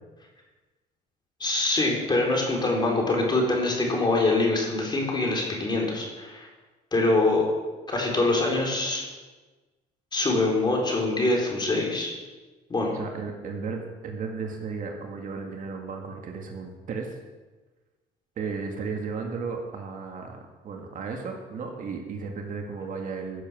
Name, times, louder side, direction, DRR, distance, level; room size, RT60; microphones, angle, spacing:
voice 1, 1.4-6.5 6.9-7.4 7.9-9.0 10.1-12.1 12.7-12.9, left 2 dB, 25° left, -1 dB, 3.9 m, -24 dB
voice 2, 12.9-17.1 18.4-23.4, right 5 dB, 50° right, 2 dB, 2.0 m, -34 dB
15.0 x 7.5 x 6.2 m, 1.3 s
cardioid pair, 110°, 17 cm